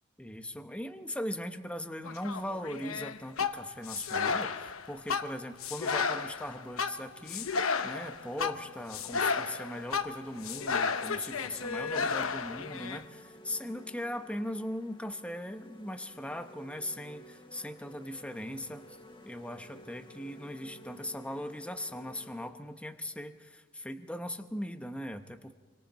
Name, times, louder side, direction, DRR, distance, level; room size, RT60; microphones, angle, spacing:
voice 1, 0.2-19.0 19.2-25.5, left 1 dB, 5° left, 6 dB, 1.0 m, -39 dB
sound 1, 2.1-13.0, left 5 dB, 85° left, 1.0 m, -33 dB
sound 2, 6.3-22.5, equal, 25° left, 1.7 m, -53 dB
29.0 x 24.0 x 4.3 m, 1.5 s
head